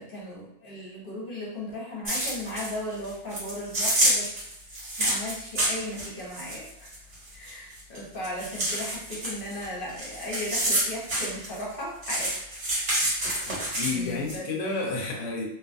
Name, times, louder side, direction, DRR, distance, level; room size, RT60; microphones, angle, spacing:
voice 1, 0.0-4.3 5.0-6.9 7.3-12.3 13.1-13.5 13.9-14.5, left 1 dB, 50° left, -4 dB, 0.9 m, -36 dB
sound 1, 2.0-2.7 3.0-8.0 8.2-11.7 12.0-14.4, right 1 dB, 75° right, 1.5 m, -28 dB
voice 2, 13.4-15.4, left 3 dB, 85° left, 0 dB, 1.0 m, -31 dB
2.7 x 2.4 x 2.4 m, 0.79 s
omnidirectional pair, 1.2 m